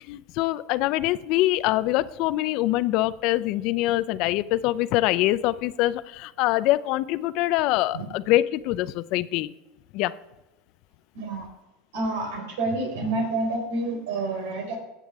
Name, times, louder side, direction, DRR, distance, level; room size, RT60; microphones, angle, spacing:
voice 1, 0.1-9.5 9.9-10.2, left 16 dB, 60° left, 16 dB, 0.5 m, -24 dB
voice 2, 11.1-11.5 11.9-14.8, right 2 dB, 85° right, 3 dB, 4.0 m, -28 dB
15.5 x 8.4 x 3.5 m, 1.0 s
supercardioid pair, 130°, 0 cm